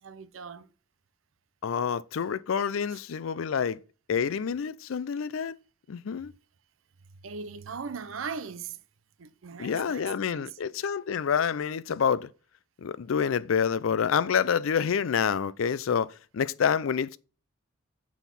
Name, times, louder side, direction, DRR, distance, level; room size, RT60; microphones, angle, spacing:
voice 1, 0.0-0.7 7.2-8.8 9.2-10.5, right 5 dB, 75° right, 0.6 m, -39 dB
voice 2, 1.6-3.8 4.1-5.6 5.9-6.3 9.6-12.3 12.8-17.2, left 7 dB, 75° left, 0.4 m, -27 dB
8.2 x 3.5 x 5.7 m
head